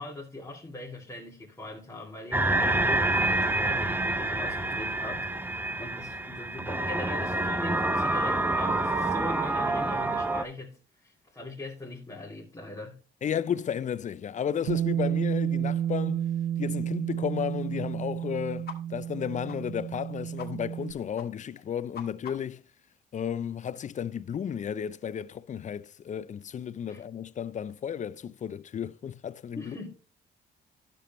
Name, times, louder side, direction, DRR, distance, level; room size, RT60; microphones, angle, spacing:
voice 1, 0.0-13.0 26.9-27.0 29.6-29.9, left 2 dB, 15° left, 2.3 m, -41 dB
sound 1, 2.3-10.4, right 2 dB, 10° right, 0.7 m, -27 dB
voice 2, 13.2-16.3 16.6-22.6 23.1-29.8, left 8 dB, 40° left, 0.5 m, -33 dB
Bass guitar, 14.7-20.9, right 10 dB, 65° right, 0.5 m, -31 dB
sound 2, 18.6-18.8 19.0-19.2 19.5-19.6 19.9-20.0 20.4-20.5 20.7-20.9 21.1-21.3 21.6-22.6, left 7 dB, 55° left, 1.8 m, -43 dB
11.0 x 6.9 x 3.0 m
cardioid pair, 90°, 20 cm